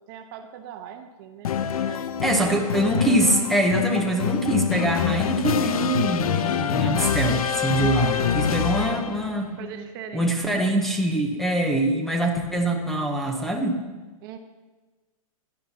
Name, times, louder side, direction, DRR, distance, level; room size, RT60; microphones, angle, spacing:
voice 1, 0.1-1.5 1.8-2.6 8.8-9.1 9.6-10.4 11.7-11.8 14.2-14.4, right 9 dB, 35° right, 7 dB, 1.0 m, -40 dB
sound 1, 1.4-9.3, left 8 dB, 75° left, 0.7 m, -25 dB
voice 2, 1.9-9.6 10.1-13.8, right 1 dB, ahead, 2 dB, 0.9 m, -24 dB
16.5 x 11.5 x 2.9 m, 1.2 s
hypercardioid pair, 155°, 18 cm